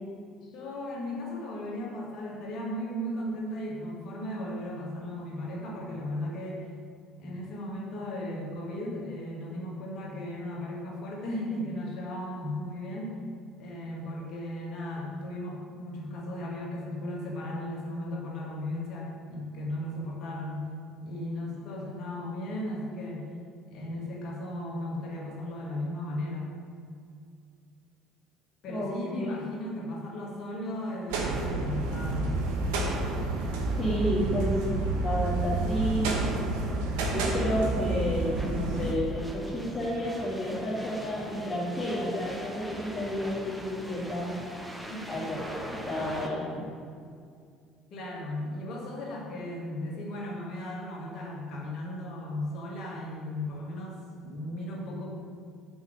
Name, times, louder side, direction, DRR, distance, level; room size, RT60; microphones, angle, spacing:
voice 1, 0.4-6.6 7.2-13.1 13.6-20.7 21.0-23.3 23.7-26.5 28.6-32.3 44.9-45.1 47.9-55.1, left 1 dB, 50° left, -3 dB, 1.9 m, -36 dB
voice 2, 28.7-29.3 33.8-34.6 34.9-36.1 37.1-44.4 45.1-46.7, equal, 20° left, -8 dB, 1.6 m, -31 dB
sound 1, 31.1-38.9, right 2 dB, 65° right, 1.0 m, -29 dB
sound 2, 38.3-46.3, equal, 5° right, 1.1 m, -41 dB
6.0 x 5.6 x 6.4 m, 2.3 s
figure-of-eight pair, 55°, 0 cm